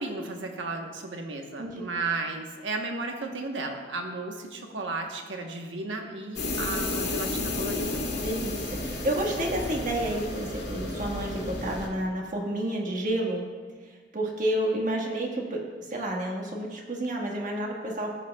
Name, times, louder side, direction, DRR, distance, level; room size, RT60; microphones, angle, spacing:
voice 1, 0.0-8.0, right 3 dB, 85° right, 3 dB, 1.1 m, -34 dB
sound 1, 6.4-11.9, left 2 dB, 65° left, 2.2 m, -32 dB
voice 2, 8.1-13.4 14.1-15.6 15.9-18.1, right 1 dB, 45° right, 0 dB, 1.5 m, -30 dB
15.0 x 8.1 x 2.3 m, 1.5 s
head